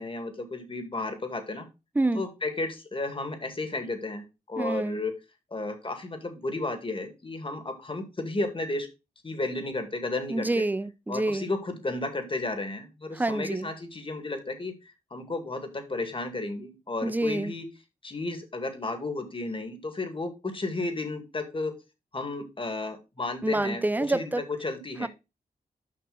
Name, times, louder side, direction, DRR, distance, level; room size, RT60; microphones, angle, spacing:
voice 1, 0.0-1.7 2.1-5.1 5.5-8.9 9.2-10.7 11.1-14.7 15.1-17.7 18.0-21.8 22.1-23.8 24.1-25.1, left 2 dB, 35° left, 1.9 m, -33 dB
voice 2, 4.6-5.0 10.3-11.5 13.1-13.7 17.0-17.5 23.4-24.4 25.0-25.1, right 2 dB, 10° right, 0.5 m, -27 dB
6.5 x 5.8 x 3.9 m
cardioid pair, 65°, 15 cm